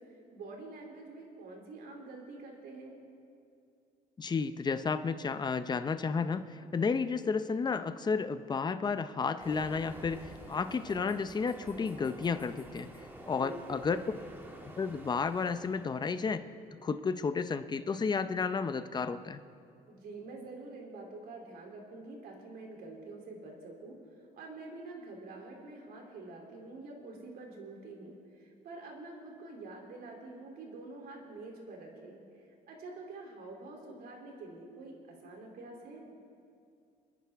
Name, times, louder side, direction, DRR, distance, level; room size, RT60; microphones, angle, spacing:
voice 1, 0.3-3.0 13.2-13.8 19.9-32.2 32.7-36.1, right 2 dB, 65° right, 0 dB, 3.1 m, -47 dB
voice 2, 4.2-12.9 13.3-14.0 14.8-16.5 16.8-19.4, left 5 dB, 25° left, 11 dB, 0.6 m, -32 dB
Train, 9.4-16.1, right 1 dB, 10° right, 1.7 m, -49 dB
27.0 x 10.0 x 3.6 m, 2.4 s
cardioid pair, 110°, 17 cm